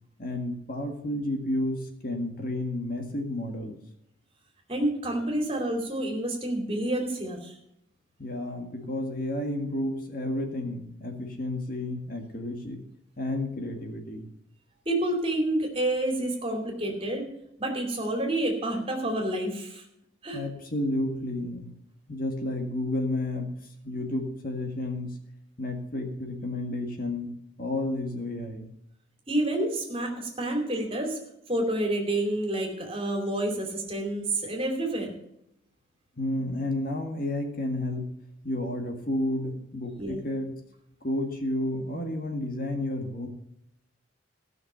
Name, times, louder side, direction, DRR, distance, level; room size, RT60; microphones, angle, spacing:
voice 1, 0.2-3.8 8.2-12.8 13.2-14.3 20.3-21.7 22.1-23.5 23.8-25.2 25.6-28.7 36.2-38.1 38.4-40.5 41.0-43.3, left 1 dB, 45° left, 3 dB, 1.8 m, -31 dB
voice 2, 4.7-7.5 14.9-17.3 17.6-19.8 20.2-20.4 29.3-31.2 31.5-35.2 40.0-40.2, right 1 dB, 30° right, 2 dB, 2.7 m, -28 dB
16.0 x 6.2 x 6.8 m, 0.77 s
head